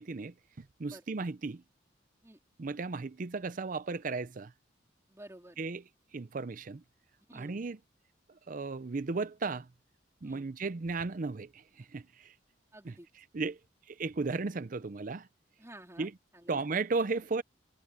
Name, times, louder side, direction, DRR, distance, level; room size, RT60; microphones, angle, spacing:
voice 1, 0.0-1.6 2.6-4.5 5.6-5.8 6.1-6.8 7.3-7.8 8.5-9.7 10.2-12.3 12.8-12.9 13.3-13.6 13.9-15.3 16.0-16.1 16.5-17.4, right 4 dB, 45° right, 0.5 m, -35 dB
voice 2, 5.1-5.6 7.3-7.6 10.2-10.5 12.7-13.1 15.6-16.7, right 1 dB, 15° right, 3.7 m, -52 dB
head